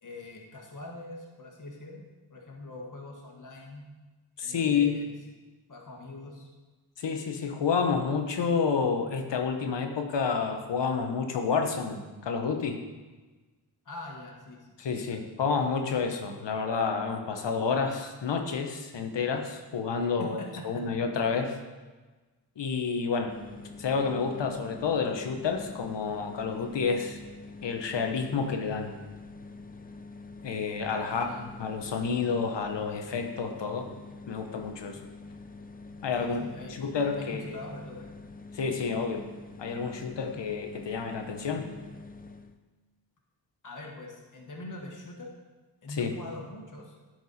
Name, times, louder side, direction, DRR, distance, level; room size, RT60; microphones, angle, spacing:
voice 1, 0.0-3.9 4.4-5.1 5.7-6.5 13.8-15.2 20.0-20.9 31.0-31.5 36.2-36.8 37.2-38.1 43.6-45.3 45.8-47.0, left 2 dB, 45° left, -1 dB, 1.5 m, -43 dB
voice 2, 4.4-5.0 7.0-12.8 14.8-21.6 22.6-23.3 23.8-27.2 27.6-28.9 30.4-31.3 31.6-33.9 34.3-35.0 36.0-36.4 36.7-37.5 38.5-39.3 39.6-41.7 45.9-46.1, left 5 dB, 75° left, 5 dB, 1.0 m, -29 dB
sound 1, 23.3-42.6, left 3 dB, 20° left, 0.5 m, -46 dB
10.5 x 4.6 x 4.2 m, 1.3 s
cardioid pair, 65°, 43 cm